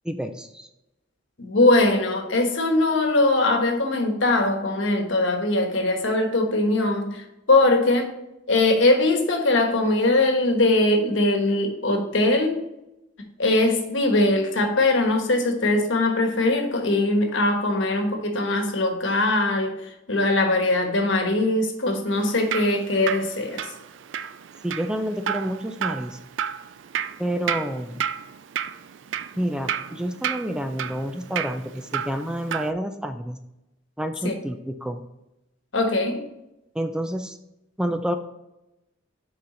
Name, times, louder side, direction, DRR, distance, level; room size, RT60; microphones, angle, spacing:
voice 1, 0.1-0.7 24.6-26.2 27.2-28.0 29.4-33.4 34.0-35.0 36.8-37.4 37.8-38.2, equal, 5° right, 0.4 m, -29 dB
voice 2, 1.4-8.1 8.5-12.6 13.4-19.8 20.1-23.6 34.2-34.4 35.7-36.2, left 2 dB, 80° left, 1.2 m, -21 dB
Drip, 22.1-32.7, right 8 dB, 75° right, 0.4 m, -32 dB
7.1 x 4.9 x 3.8 m
head